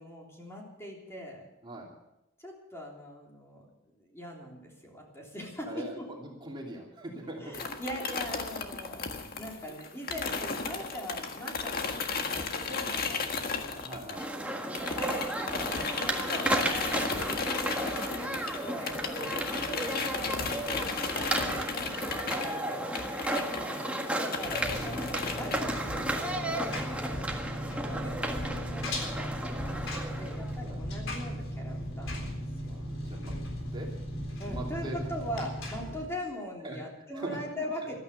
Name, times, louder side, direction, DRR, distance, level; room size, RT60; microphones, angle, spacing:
voice 1, 0.0-1.5 2.4-6.1 7.4-13.9 14.9-16.8 17.3-23.4 24.2-32.8 34.4-37.9, equal, 15° left, -2 dB, 3.4 m, -42 dB
voice 2, 5.7-6.0 6.2-7.6 12.7-12.8 13.8-14.2 23.6-23.8 27.5-27.7 30.6-30.8 32.7-33.4 33.7-33.9 34.4-35.1 36.6-36.8 37.1-37.7, right 1 dB, 25° right, -1 dB, 2.8 m, -41 dB
sound 1, 7.5-14.5 14.7-25.6, left 4 dB, 50° left, 1.6 m, -35 dB
sound 2, 14.1-30.6, right 1 dB, 5° right, 1.6 m, -34 dB
Engine, 24.4-36.0, equal, 85° left, 3.9 m, -37 dB
15.0 x 13.0 x 6.7 m, 0.88 s
head